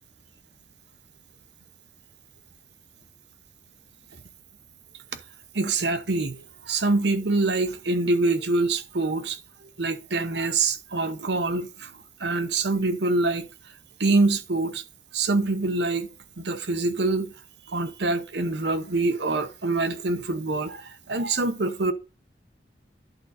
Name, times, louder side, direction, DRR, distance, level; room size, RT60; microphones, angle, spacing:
voice 1, 5.5-11.9 12.2-13.5 14.0-14.8 15.1-16.1 16.4-17.3 17.7-21.9, right 3 dB, 80° right, 0.9 m, -25 dB
11.0 x 3.8 x 4.2 m
head